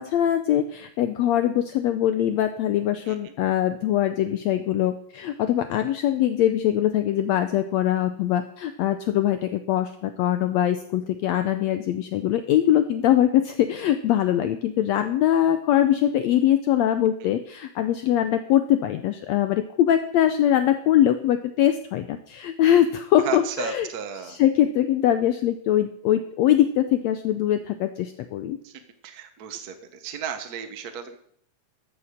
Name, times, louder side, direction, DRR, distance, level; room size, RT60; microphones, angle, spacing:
voice 1, 0.0-23.9 24.1-28.6, left 11 dB, 80° left, 9 dB, 1.5 m, -22 dB
voice 2, 23.2-24.4 28.6-28.7 29.0-29.7 30.0-31.1, right 8 dB, 70° right, 7 dB, 0.8 m, -33 dB
13.5 x 7.2 x 6.4 m, 0.66 s
omnidirectional pair, 3.8 m